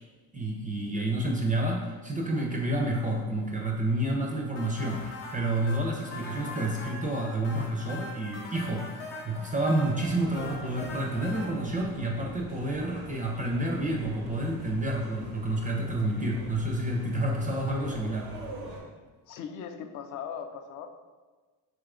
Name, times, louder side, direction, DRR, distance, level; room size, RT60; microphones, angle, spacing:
voice 1, 0.3-18.3, right 1 dB, 20° right, -1 dB, 0.4 m, -29 dB
sound 1, 4.6-11.5, left 2 dB, 70° left, 0.9 m, -42 dB
sound 2, 10.0-18.8, equal, 85° right, 0.8 m, -44 dB
voice 2, 19.3-20.9, left 7 dB, 45° left, 7 dB, 0.4 m, -39 dB
2.8 x 2.4 x 3.5 m, 1.3 s
hypercardioid pair, 70°, 44 cm